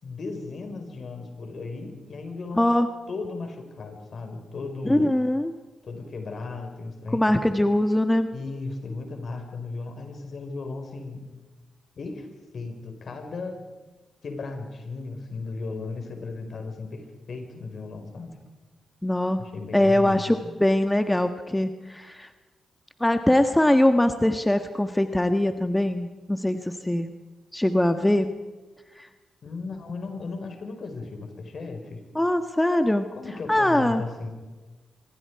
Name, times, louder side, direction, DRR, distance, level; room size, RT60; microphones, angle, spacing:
voice 1, 0.0-2.7 3.1-5.1 5.8-7.3 8.3-11.3 11.9-12.3 12.5-13.6 14.2-18.3 19.4-20.3 29.4-32.0 33.2-34.3, left 3 dB, 60° left, 5 dB, 4.9 m, -36 dB
voice 2, 2.6-2.9 4.9-5.5 7.1-8.3 19.0-19.5 19.7-22.3 23.0-27.1 27.5-28.3 29.0-29.1 32.1-33.1 33.5-34.0, left 1 dB, 10° left, 7 dB, 1.4 m, -22 dB
25.0 x 22.0 x 4.8 m, 1.2 s
supercardioid pair, 55°, 0 cm